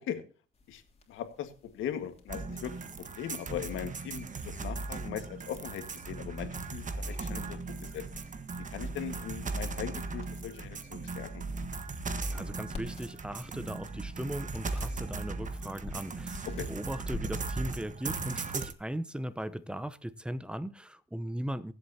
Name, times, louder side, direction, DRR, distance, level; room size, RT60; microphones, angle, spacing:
sound 1, 0.5-20.1, left 3 dB, 30° left, 3.1 m, -51 dB
voice 1, 1.1-8.0 8.7-11.4 16.5-16.7, left 9 dB, 85° left, 1.8 m, -39 dB
sound 2, 2.3-18.7, right 3 dB, 40° right, 1.5 m, -38 dB
voice 2, 12.2-21.7, equal, 5° right, 0.8 m, -38 dB
23.0 x 8.0 x 2.9 m
cardioid pair, 90°, 20 cm